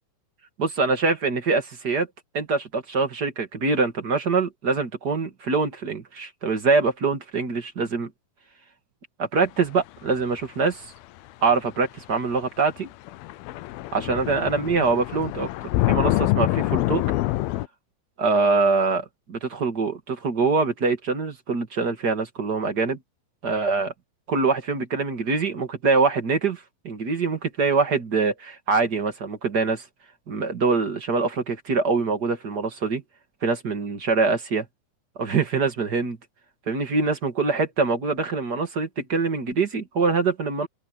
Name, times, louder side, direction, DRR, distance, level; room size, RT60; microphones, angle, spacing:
voice 1, 0.6-2.1 2.3-8.1 9.2-10.9 11.4-12.9 13.9-15.5 15.9-17.0 18.2-23.0 23.4-23.9 24.3-29.9 30.3-33.0 33.4-34.7 35.2-36.2 36.7-40.7, right 4 dB, 35° right, 1.8 m, -24 dB
sound 1, 11.5-11.6 12.8-12.9 13.1-17.7, left 17 dB, 85° left, 2.6 m, -25 dB
open air
omnidirectional pair, 4.4 m